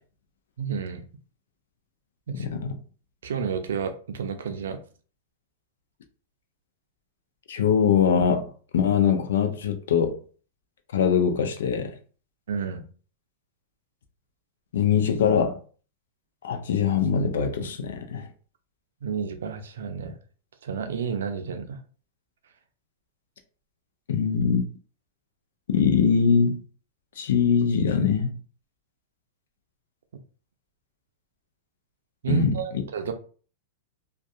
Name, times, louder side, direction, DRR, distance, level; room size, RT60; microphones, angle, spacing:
voice 1, 0.6-1.0 2.3-2.4 3.2-4.8 12.5-12.8 19.0-20.2 20.6-21.8 32.2-33.1, right 5 dB, 80° right, 0.5 m, -30 dB
voice 2, 2.4-2.7 7.5-8.4 8.7-10.1 10.9-11.9 14.7-15.6 16.4-18.2 24.1-24.6 25.7-26.6 27.2-28.3 32.3-32.6, left 6 dB, 80° left, 0.5 m, -22 dB
2.6 x 2.3 x 2.4 m
hypercardioid pair, 120°, 0 cm